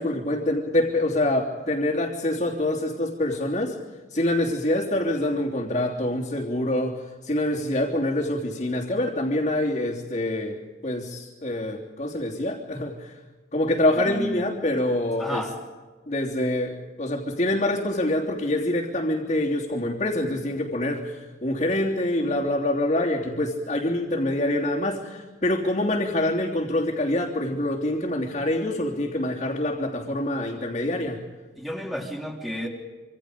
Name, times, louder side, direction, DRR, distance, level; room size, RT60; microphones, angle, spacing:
voice 1, 0.0-3.8 4.1-13.1 13.5-15.5 16.1-31.2, left 1 dB, 40° left, -5 dB, 3.2 m, -26 dB
voice 2, 14.1-14.5 15.2-15.5 31.6-32.7, equal, ahead, 1 dB, 3.5 m, -31 dB
27.0 x 26.0 x 5.2 m, 1.3 s
head